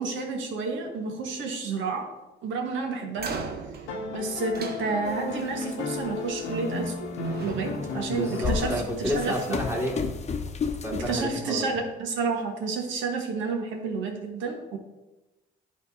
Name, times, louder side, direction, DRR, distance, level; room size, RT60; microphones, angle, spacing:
voice 1, 0.0-2.1 2.4-3.4 4.1-7.1 7.4-8.7 9.0-9.6 11.1-14.8, right 4 dB, 75° right, 3 dB, 1.4 m, -30 dB
sound 1, 3.1-5.4 6.6-6.9 7.2-9.0, right 5 dB, 55° right, 1.0 m, -39 dB
sound 2, 3.9-10.3 11.8-11.9, left 3 dB, 85° left, 0.8 m, -34 dB
sound 3, 5.1-5.2 5.6-6.2 6.8-6.9 8.0-11.3, left 5 dB, 35° left, 0.8 m, -32 dB
voice 2, 8.2-10.3 10.8-11.7, equal, 10° right, -4 dB, 2.4 m, -30 dB
10.5 x 3.6 x 4.2 m, 1.0 s
supercardioid pair, 65°, 20 cm